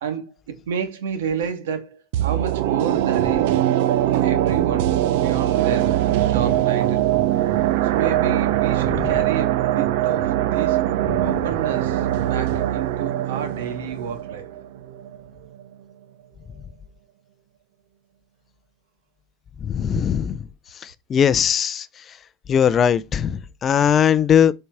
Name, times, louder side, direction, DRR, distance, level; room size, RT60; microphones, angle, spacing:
voice 1, 0.0-3.6 4.0-7.1 7.8-10.9 11.2-14.5, right 6 dB, 90° right, 2.5 m, -30 dB
sound 1, 2.1-15.2 15.5-15.6, right 13 dB, 65° right, 0.8 m, -21 dB
voice 2, 19.6-20.4 20.8-21.9 22.5-24.5, left 8 dB, 25° left, 0.6 m, -19 dB
8.2 x 5.6 x 4.8 m
supercardioid pair, 150°, 0 cm